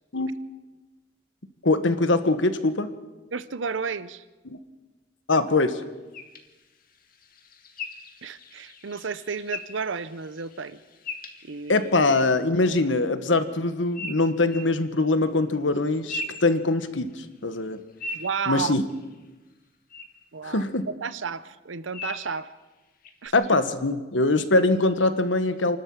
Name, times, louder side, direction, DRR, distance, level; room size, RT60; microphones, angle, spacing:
voice 1, 1.6-2.9 4.5-4.6 5.3-5.8 11.7-17.8 18.5-18.8 20.4-20.9 23.3-25.8, left 2 dB, 80° left, 10 dB, 1.5 m, -23 dB
voice 2, 3.3-4.2 8.2-10.8 11.4-11.9 18.1-18.8 20.3-22.5 23.2-23.3, right 5 dB, 85° right, 15 dB, 0.7 m, -32 dB
sound 1, 6.1-12.0 13.9-14.7 15.7-17.2 17.5-19.3 19.9-20.1 20.6-20.7 21.9-22.3 23.0-23.3, left 2 dB, 50° left, 2.1 m, -40 dB
29.0 x 12.5 x 7.3 m, 1.2 s
head